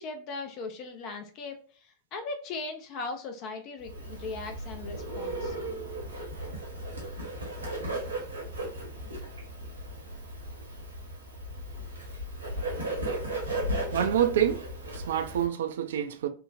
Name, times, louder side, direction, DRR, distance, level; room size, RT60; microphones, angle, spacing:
voice 1, 0.0-5.6, left 3 dB, 40° left, 0.4 m, -38 dB
Bird, 3.8-15.5, right 1 dB, 75° right, 1.0 m, -36 dB
voice 2, 13.9-16.3, right 10 dB, 60° right, 0.3 m, -27 dB
3.1 x 2.1 x 2.4 m
figure-of-eight pair, 90°, 0 cm